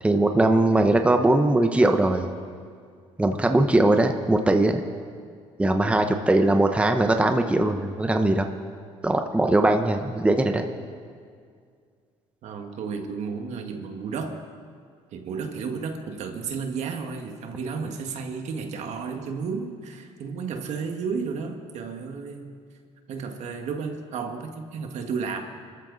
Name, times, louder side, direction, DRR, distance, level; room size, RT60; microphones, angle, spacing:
voice 1, 0.0-2.3 3.2-4.8 5.6-8.5 9.0-10.6, right 2 dB, 10° right, 5 dB, 1.0 m, -20 dB
voice 2, 12.4-14.4 15.1-22.5 23.1-25.4, right 5 dB, 70° right, 4 dB, 1.8 m, -32 dB
25.5 x 14.0 x 4.1 m, 2.1 s
cardioid pair, 110°, 12 cm